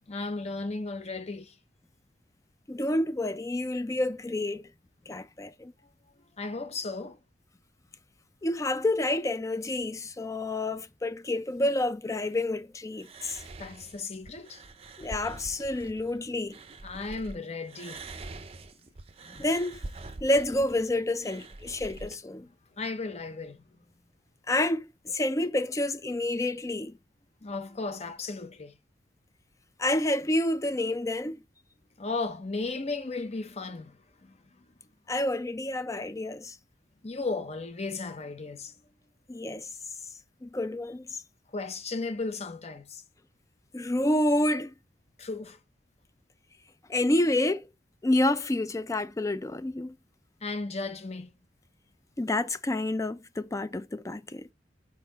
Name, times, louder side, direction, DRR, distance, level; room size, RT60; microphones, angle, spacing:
voice 1, 0.1-1.6 6.4-7.2 13.6-14.6 16.8-18.0 22.8-23.8 27.4-28.8 32.0-34.6 37.0-38.7 41.5-43.0 45.2-45.6 50.4-51.3, left 3 dB, 35° left, 0.9 m, -35 dB
voice 2, 2.7-4.6 5.1-5.7 8.4-13.4 15.0-16.6 19.3-19.8 20.2-22.5 24.5-27.0 29.8-31.4 35.1-36.5 39.3-39.7 40.4-41.2 43.7-44.7 46.9-47.7 48.0-50.0 52.2-54.5, left 1 dB, 20° left, 0.4 m, -28 dB
sound 1, 13.0-17.4 17.7-22.2, right 2 dB, 35° right, 0.6 m, -44 dB
4.9 x 4.0 x 5.2 m
head